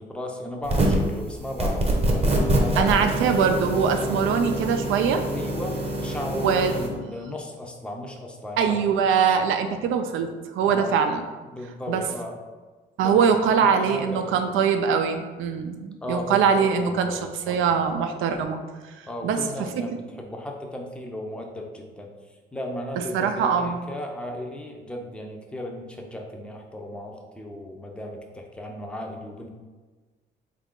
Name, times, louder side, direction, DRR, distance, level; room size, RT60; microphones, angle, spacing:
voice 1, 0.0-2.9 5.3-8.8 10.6-10.9 11.5-12.4 13.0-13.2 13.6-14.4 16.0-17.6 19.1-22.1 22.5-29.5, left 1 dB, 5° left, 1 dB, 0.5 m, -35 dB
sound 1, 0.6-1.1 1.6-6.9, right 1 dB, 30° right, 0.8 m, -25 dB
voice 2, 2.8-5.2 6.4-6.8 8.6-11.2 11.9-12.0 13.0-18.6 19.0-20.0 23.1-23.8, right 6 dB, 85° right, 6 dB, 0.4 m, -23 dB
3.7 x 2.4 x 3.6 m, 1.3 s
cardioid pair, 90°, 20 cm